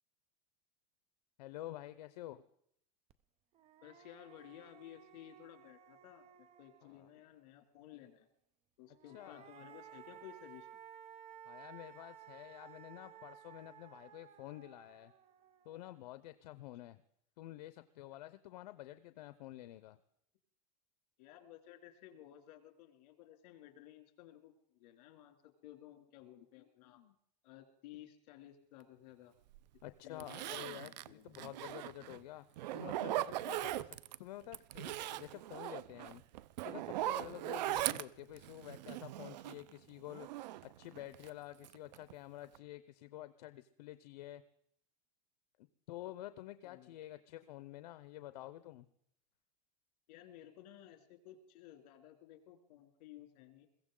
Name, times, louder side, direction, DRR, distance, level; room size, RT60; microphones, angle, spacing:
voice 1, 1.4-2.4 6.8-7.1 9.1-9.5 11.4-15.1 15.6-17.0 17.4-20.0 26.6-27.1 29.8-32.4 32.7-36.2 36.6-44.4 45.6-48.9, left 15 dB, 80° left, 12 dB, 0.7 m, -50 dB
sound 1, 3.1-3.2 3.5-7.2 8.9-16.1, right 9 dB, 30° right, 0.7 m, -57 dB
voice 2, 3.8-8.3 8.8-10.8 21.2-27.0 27.4-29.3 30.0-31.4 46.6-47.0 50.1-53.7, left 12 dB, 65° left, 6 dB, 2.6 m, -56 dB
Zipper (clothing), 29.5-29.6 30.2-32.2 32.6-34.2 34.5-39.7 40.1-41.3 41.6-42.1 42.4-42.6, right 15 dB, 85° right, 0.6 m, -40 dB
22.0 x 16.0 x 3.8 m, 0.70 s
supercardioid pair, 145°, 21 cm